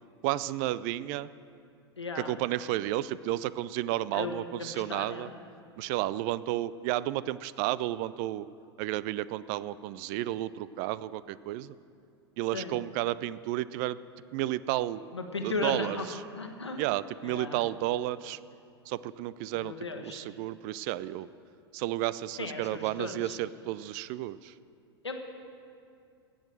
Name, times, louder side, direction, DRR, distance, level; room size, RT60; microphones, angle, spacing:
voice 1, 0.2-1.3 2.2-5.3 5.8-8.5 8.8-11.7 12.4-14.0 14.3-15.1 15.4-16.2 16.8-18.4 18.9-21.3 21.7-24.5, right 15 dB, 45° right, 18 dB, 0.4 m, -32 dB
voice 2, 2.0-2.3 4.1-5.3 12.5-12.8 15.1-16.1 16.4-16.8 17.2-17.6 19.6-20.2 22.4-23.4 25.0-25.2, left 3 dB, 85° left, 3 dB, 1.3 m, -36 dB
16.5 x 6.3 x 7.7 m, 2.4 s
figure-of-eight pair, 90°, 14 cm